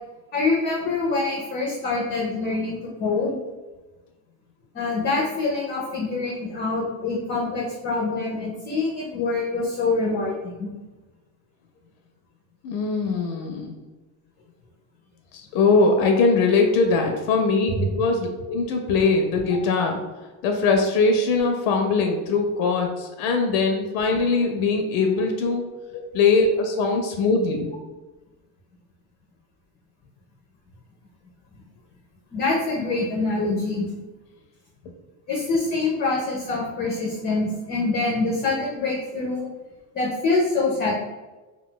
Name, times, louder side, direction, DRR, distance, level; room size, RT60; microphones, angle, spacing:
voice 1, 0.3-3.4 4.7-10.7 16.9-17.0 25.9-26.0 32.3-33.9 35.3-39.5 39.9-41.0, left 3 dB, 25° left, -4 dB, 0.4 m, -25 dB
voice 2, 12.6-13.8 15.3-20.0 20.4-25.6 26.1-27.7, left 4 dB, 85° left, 3 dB, 0.5 m, -21 dB
2.2 x 2.2 x 3.7 m, 1.2 s
cardioid pair, 165°, 39 cm